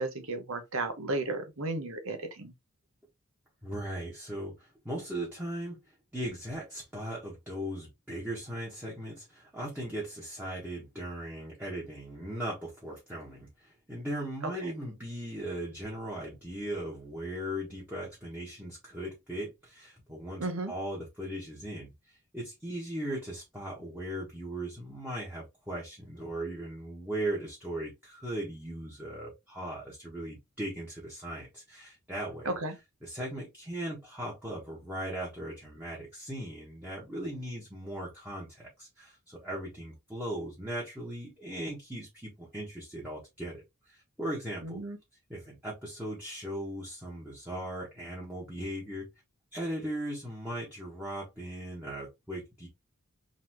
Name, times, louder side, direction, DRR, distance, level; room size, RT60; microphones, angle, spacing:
voice 1, 0.0-2.5 14.4-14.7 20.4-20.7 32.4-32.8 44.6-45.0, right 2 dB, 75° right, 1.0 m, -34 dB
voice 2, 3.6-5.8 6.1-32.5 33.0-44.8 45.3-49.1 49.5-52.7, right 1 dB, 10° right, 1.4 m, -38 dB
4.1 x 3.3 x 3.0 m
head